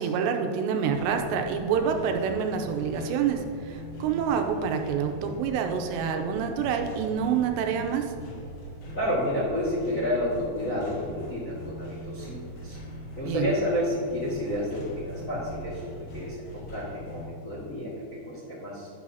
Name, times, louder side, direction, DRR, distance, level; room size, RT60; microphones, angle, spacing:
voice 1, 0.0-8.0 13.2-13.5, right 7 dB, 85° right, 5 dB, 2.9 m, -27 dB
sound 1, 0.8-17.3, equal, 60° left, 1.5 m, -41 dB
voice 2, 8.9-12.8 13.1-18.9, left 1 dB, 75° left, -6 dB, 0.7 m, -30 dB
11.0 x 11.0 x 2.8 m, 2.1 s
omnidirectional pair, 5.1 m